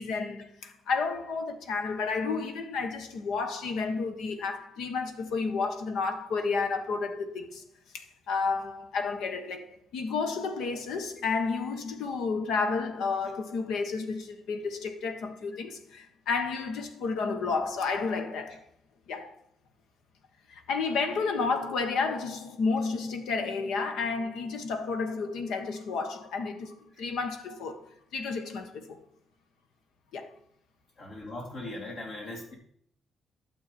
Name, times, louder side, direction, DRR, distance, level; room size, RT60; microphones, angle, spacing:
voice 1, 0.0-7.6 7.9-18.6 19.1-19.3 20.5-29.0 30.1-30.3, left 4 dB, 80° left, 1.3 m, -31 dB
voice 2, 31.0-32.6, left 1 dB, 65° left, 3.8 m, -39 dB
12.0 x 7.5 x 4.4 m
cardioid pair, 90°, 0 cm